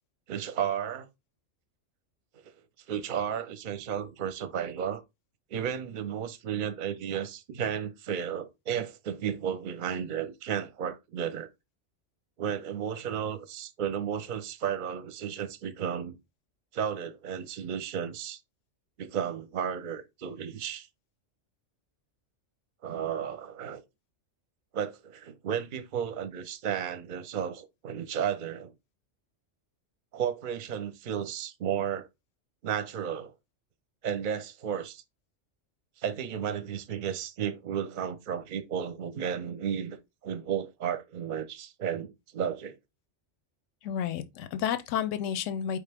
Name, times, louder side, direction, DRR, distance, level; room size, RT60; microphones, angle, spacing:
voice 1, 0.3-1.1 2.9-5.0 5.5-11.5 12.4-16.1 16.7-18.4 19.0-20.9 22.8-23.8 24.7-28.7 30.1-32.1 32.6-33.3 34.0-35.0 36.0-40.0 40.2-42.8, right 8 dB, 50° right, 0.7 m, -33 dB
voice 2, 43.8-45.8, left 9 dB, 90° left, 0.9 m, -31 dB
4.9 x 3.3 x 3.3 m
omnidirectional pair, 1.2 m